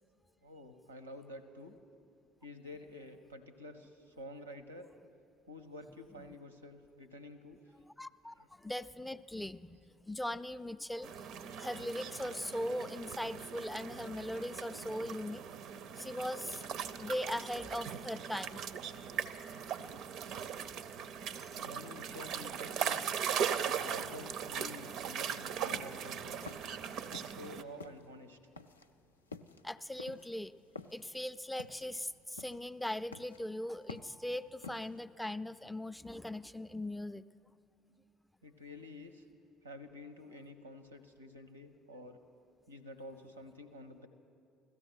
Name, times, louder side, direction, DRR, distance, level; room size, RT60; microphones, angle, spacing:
voice 1, 0.4-1.8 2.4-4.9 5.5-7.6 8.4-8.5 21.6-23.2 23.8-26.5 27.1-28.4 38.4-39.2 39.6-42.2 42.7-44.1, left 1 dB, 85° right, 10 dB, 0.7 m, -49 dB
voice 2, 7.9-9.8 10.1-15.4 16.0-18.6 29.6-30.5 30.9-37.2, left 1 dB, 5° left, 13 dB, 0.3 m, -40 dB
sound 1, 11.0-27.6, right 8 dB, 55° right, 0.5 m, -39 dB
sound 2, 25.7-27.5 27.8-35.0, left 3 dB, 85° left, 0.3 m, -50 dB
16.5 x 13.5 x 6.3 m, 2.6 s
figure-of-eight pair, 55°, 0 cm